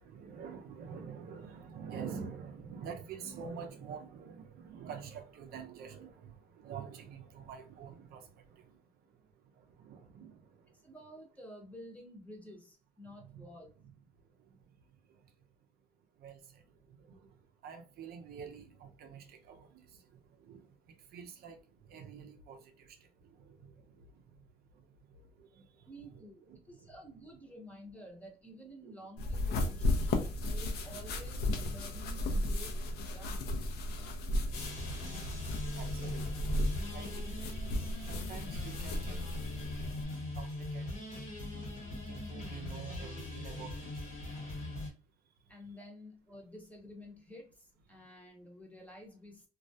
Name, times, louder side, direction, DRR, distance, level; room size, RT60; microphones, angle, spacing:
voice 1, 0.0-8.8 9.1-9.2 9.5-10.8 13.0-13.5 13.8-13.9 14.4-14.6 15.1-15.2 16.2-26.9 28.8-29.1 29.4-29.5 30.2-30.5 34.0-34.1 35.0-35.3 35.7-36.3 36.9-39.7 40.3-40.9 41.9-44.2, right 6 dB, 65° right, 0.5 m, -48 dB
voice 2, 10.8-13.7 25.9-33.5 45.5-49.5, equal, 10° left, 0.7 m, -51 dB
sound 1, 29.2-40.0, left 1 dB, 70° left, 0.5 m, -35 dB
sound 2, 34.5-44.9, left 2 dB, 50° left, 1.1 m, -41 dB
2.3 x 2.1 x 2.6 m
cardioid pair, 110°, 17 cm